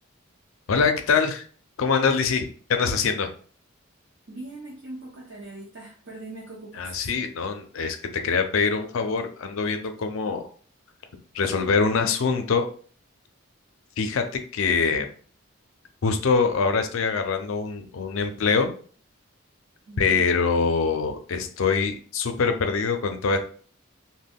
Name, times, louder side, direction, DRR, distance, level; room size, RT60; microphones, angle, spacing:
voice 1, 0.7-1.4 1.8-3.3 6.8-10.5 11.3-12.7 14.0-14.2 14.5-15.1 16.0-18.7 20.0-23.4, left 5 dB, 70° left, 7 dB, 0.4 m, -24 dB
voice 2, 4.3-7.0 19.9-20.2, right 2 dB, 60° right, -5 dB, 0.6 m, -41 dB
2.2 x 2.1 x 3.4 m, 0.44 s
head